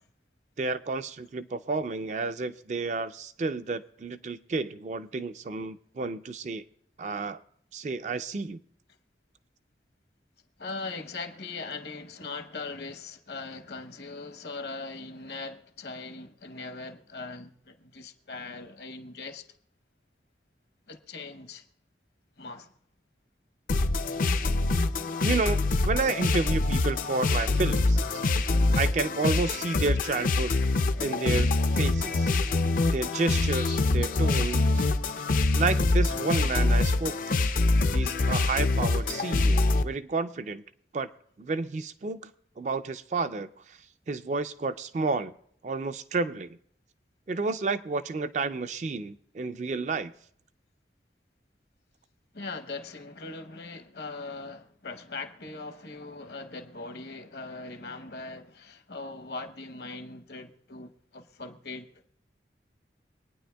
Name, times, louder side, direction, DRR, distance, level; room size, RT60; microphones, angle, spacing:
voice 1, 0.6-6.6 7.0-7.4 7.7-8.6 25.2-28.0 28.7-30.5 31.0-32.3 32.9-34.9 35.5-37.4 37.9-40.6 40.9-41.1 41.4-42.3 42.6-43.8 44.1-45.3 45.6-46.6 47.3-50.1, right 3 dB, 40° right, 0.3 m, -31 dB
voice 2, 10.6-19.5 20.9-21.7 22.4-22.7 28.7-28.8 35.1-35.3 52.3-61.9, left 3 dB, 65° left, 0.9 m, -40 dB
sound 1, 23.7-39.8, left 2 dB, 45° left, 0.4 m, -25 dB
25.0 x 9.4 x 2.2 m
head